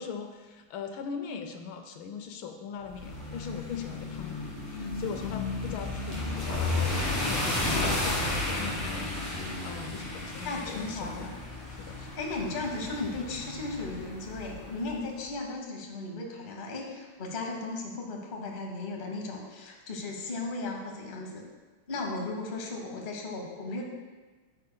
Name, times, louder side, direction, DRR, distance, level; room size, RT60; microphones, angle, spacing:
voice 1, 0.0-11.4 11.8-12.1, left 6 dB, 80° left, 6 dB, 1.4 m, -41 dB
sound 1, 2.9-15.0, left 2 dB, 10° left, 1.4 m, -33 dB
voice 2, 10.4-11.3 12.2-21.4 21.9-23.8, left 3 dB, 35° left, 0 dB, 0.9 m, -36 dB
9.7 x 7.4 x 2.2 m, 1.3 s
omnidirectional pair, 2.2 m